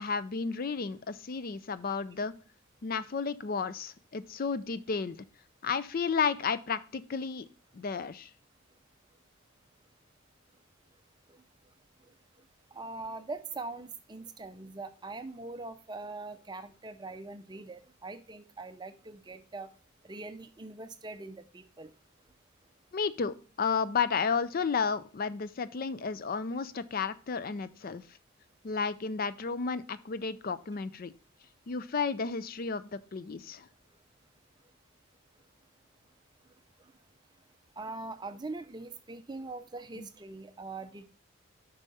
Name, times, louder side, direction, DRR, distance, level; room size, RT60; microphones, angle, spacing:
voice 1, 0.0-2.3 2.8-5.2 5.6-7.5 7.7-8.3 22.9-28.0 28.6-31.1 31.7-33.7 40.0-40.1, left 5 dB, 40° left, 15 dB, 0.4 m, -32 dB
voice 2, 12.7-19.7 20.0-21.9 37.8-41.1, right 3 dB, 20° right, 10 dB, 0.5 m, -42 dB
7.1 x 5.5 x 4.1 m, 0.39 s
head